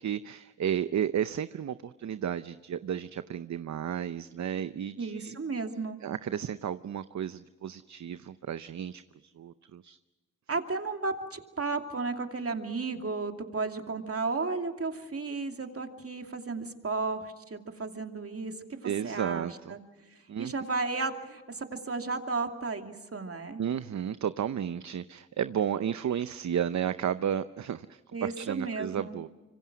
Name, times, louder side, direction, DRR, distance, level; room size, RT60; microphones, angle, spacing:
voice 1, 0.0-5.4 6.0-9.0 9.4-10.0 18.8-19.7 20.3-20.5 23.6-29.3, right 9 dB, 65° right, 13 dB, 0.7 m, -33 dB
voice 2, 5.0-6.0 10.5-19.8 20.4-23.6 28.1-29.2, right 3 dB, 50° right, 5 dB, 2.7 m, -34 dB
26.0 x 25.0 x 6.1 m, 1.2 s
cardioid pair, 45°, 30 cm